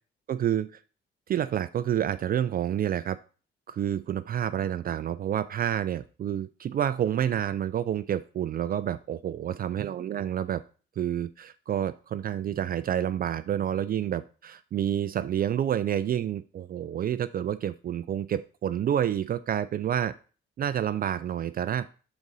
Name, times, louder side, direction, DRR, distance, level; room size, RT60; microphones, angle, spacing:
voice 1, 0.3-0.8 1.3-3.2 3.7-10.6 11.0-20.1 20.6-21.9, right 10 dB, 45° right, 12 dB, 0.4 m, -29 dB
6.2 x 3.8 x 5.4 m, 0.37 s
cardioid pair, 90°, 20 cm